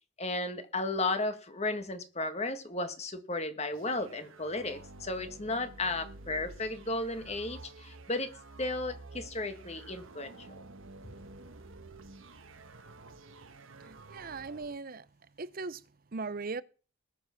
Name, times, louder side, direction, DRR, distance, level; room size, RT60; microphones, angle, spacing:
voice 1, 0.2-8.3 8.6-10.5, left 2 dB, 30° left, 1.5 m, -34 dB
sound 1, 3.7-14.7, right 2 dB, 65° right, 1.3 m, -50 dB
voice 2, 13.8-15.1 15.4-15.8 16.1-16.6, right 4 dB, 40° right, 0.7 m, -38 dB
20.0 x 7.1 x 5.8 m
head